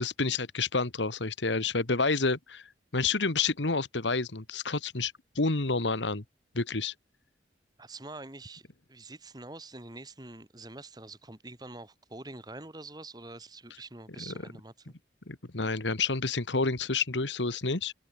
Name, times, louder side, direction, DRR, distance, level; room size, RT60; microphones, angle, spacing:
voice 1, 0.0-6.2 6.6-6.9 14.2-14.3 15.3-17.9, left 3 dB, 90° left, 1.8 m, -29 dB
voice 2, 7.8-14.9, right 2 dB, 20° right, 2.2 m, -45 dB
open air
head